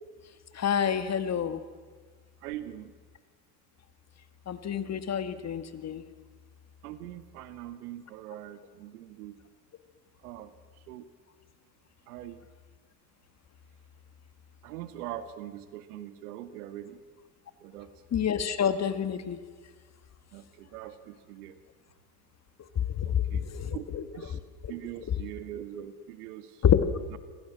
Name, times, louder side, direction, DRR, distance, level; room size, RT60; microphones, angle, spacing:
voice 1, 0.5-1.6 4.5-6.0 18.1-19.4 22.8-24.0 24.6-24.7 26.6-27.2, left 8 dB, 35° left, 10 dB, 2.1 m, -28 dB
voice 2, 2.4-2.9 6.8-9.4 10.2-10.5 10.9-11.1 12.1-12.4 14.6-17.0 17.6-17.9 20.3-21.6 23.0-23.9 24.1-24.4 24.7-26.6 27.1-27.2, right 12 dB, 75° right, 11 dB, 1.8 m, -42 dB
28.0 x 25.0 x 7.6 m, 1.5 s
hypercardioid pair, 85°, 46 cm